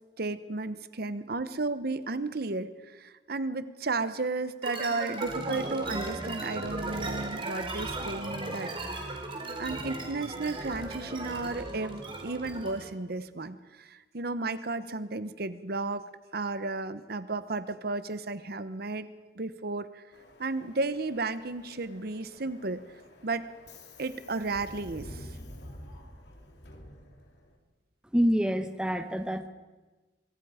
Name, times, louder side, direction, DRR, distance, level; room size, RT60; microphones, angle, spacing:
voice 1, 0.2-9.2 9.6-19.1 19.4-20.0 20.4-22.8 23.2-23.5 24.0-25.4, right 3 dB, 60° right, 12 dB, 0.9 m, -33 dB
sound 1, 4.6-12.9, right 2 dB, 30° right, 3.2 m, -36 dB
Subway metro underground, 20.1-27.5, left 1 dB, 65° left, 3.2 m, -49 dB
voice 2, 28.1-29.5, equal, 5° right, 8 dB, 1.1 m, -26 dB
25.5 x 23.5 x 5.0 m, 1.2 s
head